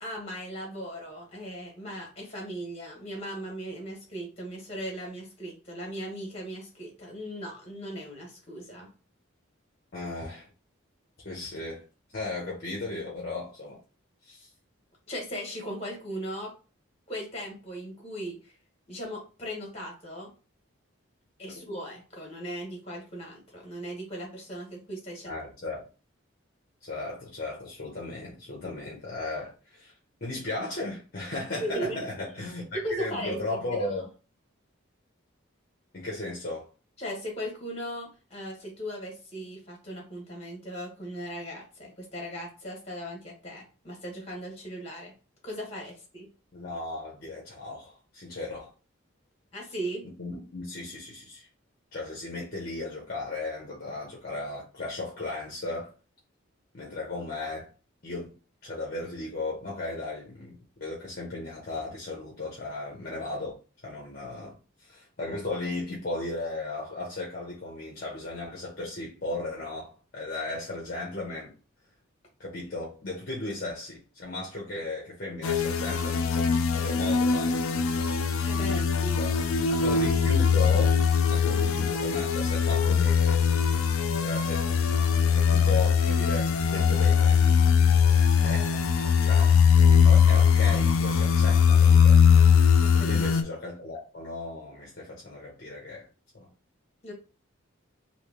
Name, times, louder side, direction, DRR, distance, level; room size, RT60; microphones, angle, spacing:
voice 1, 0.0-8.9 15.1-16.5 17.1-18.5 18.9-20.3 21.4-25.3 31.6-32.0 32.7-33.4 33.7-33.8 37.0-45.1 45.4-46.3 49.5-50.0 78.4-79.2 92.8-93.1 97.0-97.1, equal, 30° left, 1.6 m, -38 dB
voice 2, 9.9-10.5 11.2-11.8 12.1-13.8 14.2-14.5 25.2-25.8 26.8-29.9 30.2-34.0 35.9-36.7 46.5-48.7 50.2-51.5 51.9-55.9 56.7-57.7 58.0-58.3 58.6-63.6 63.8-71.5 72.4-77.6 78.7-78.9 79.2-79.4 79.7-81.0 81.3-83.4 84.2-85.0 85.2-87.4 88.4-88.9 89.2-89.5 90.0-92.2 92.9-96.0 96.3-96.5, left 2 dB, 45° left, 0.9 m, -36 dB
sound 1, 75.4-93.4, left 6 dB, 85° left, 0.5 m, -21 dB
3.3 x 2.8 x 3.0 m
head